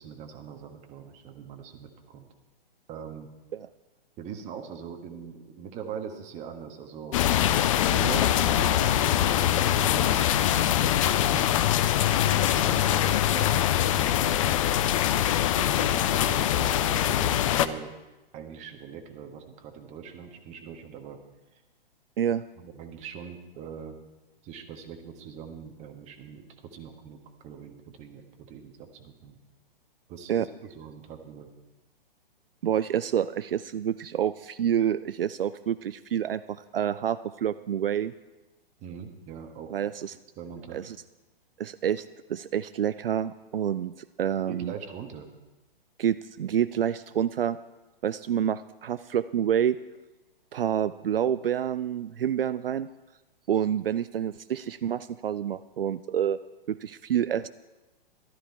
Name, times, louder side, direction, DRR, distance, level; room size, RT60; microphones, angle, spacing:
voice 1, 0.0-2.3 2.9-3.3 4.2-7.2 7.9-11.6 12.3-13.5 13.8-14.7 15.5-17.9 18.3-21.2 22.6-24.0 24.4-29.4 30.1-31.5 38.8-39.7 40.4-40.8 44.5-45.3, right 7 dB, 25° right, 5 dB, 1.3 m, -41 dB
sound 1, 7.1-17.7, left 11 dB, 35° left, 0.5 m, -23 dB
voice 2, 32.6-38.1 39.7-40.1 40.7-41.0 41.6-44.7 46.0-47.6 48.0-49.8 50.5-52.9 53.5-56.4 56.7-57.5, right 9 dB, 75° right, 14 dB, 0.5 m, -28 dB
13.0 x 12.5 x 4.6 m, 1.1 s
figure-of-eight pair, 120°, 29 cm